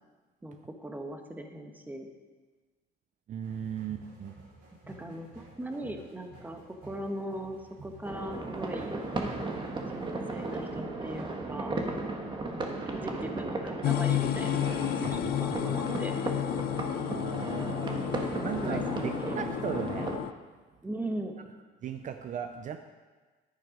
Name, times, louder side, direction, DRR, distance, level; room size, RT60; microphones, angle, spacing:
voice 1, 0.4-2.1 4.9-8.9 9.9-11.8 12.5-16.2 18.3-19.4 20.8-21.4, right 1 dB, 10° right, 5 dB, 1.2 m, -39 dB
voice 2, 3.3-4.4 15.0-15.8 17.0-20.3 21.8-22.8, right 8 dB, 50° right, 8 dB, 0.6 m, -38 dB
sound 1, 3.4-10.8, right 2 dB, 75° right, 4.0 m, -53 dB
sound 2, 8.0-20.2, right 2 dB, 30° right, 1.5 m, -35 dB
sound 3, 13.8-20.3, left 14 dB, 65° left, 0.4 m, -32 dB
11.0 x 9.2 x 5.0 m, 1.3 s
cardioid pair, 110°, 17 cm